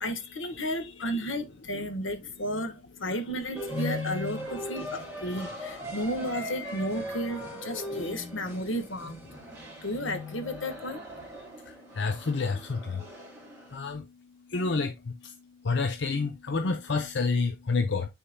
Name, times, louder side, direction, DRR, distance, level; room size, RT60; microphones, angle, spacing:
voice 1, 0.0-9.2 9.8-11.0, equal, 80° left, 1.4 m, -33 dB
sound 1, 3.6-13.8, left 1 dB, 10° right, 3.1 m, -39 dB
voice 2, 12.0-12.8 13.7-14.0 14.5-14.9 15.7-18.1, left 4 dB, 60° left, 0.6 m, -28 dB
9.9 x 4.4 x 2.2 m
head